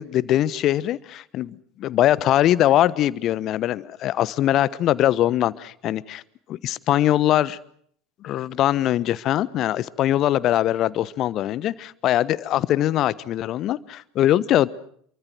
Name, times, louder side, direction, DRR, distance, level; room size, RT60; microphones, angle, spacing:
voice 1, 0.0-6.2 6.5-7.6 8.2-14.7, left 13 dB, 45° left, 19 dB, 1.1 m, -22 dB
28.0 x 24.0 x 6.1 m, 0.63 s
figure-of-eight pair, 75°, 0 cm